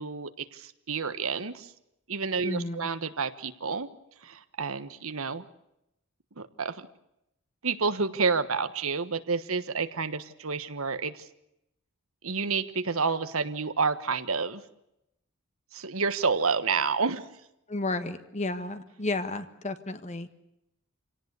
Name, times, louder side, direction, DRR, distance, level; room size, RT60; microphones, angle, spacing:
voice 1, 0.0-1.7 2.1-3.9 4.2-5.5 6.4-6.9 7.6-11.3 12.2-14.6 15.7-17.2, right 4 dB, 75° right, 11 dB, 1.4 m, -29 dB
voice 2, 2.4-2.9 17.7-20.3, left 2 dB, 35° left, 10 dB, 1.7 m, -32 dB
27.0 x 18.0 x 8.3 m, 0.85 s
head